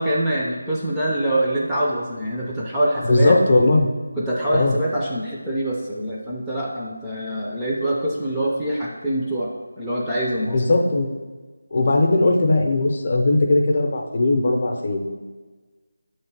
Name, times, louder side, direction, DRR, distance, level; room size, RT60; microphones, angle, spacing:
voice 1, 0.0-3.4 4.2-9.5 9.8-10.8 11.8-11.9, right 1 dB, 5° right, -7 dB, 0.4 m, -24 dB
voice 2, 3.1-3.9 4.5-4.7 10.5-11.1 11.7-15.1, left 2 dB, 35° left, 3 dB, 0.7 m, -18 dB
6.4 x 3.2 x 6.0 m, 1.3 s
figure-of-eight pair, 175°, 0 cm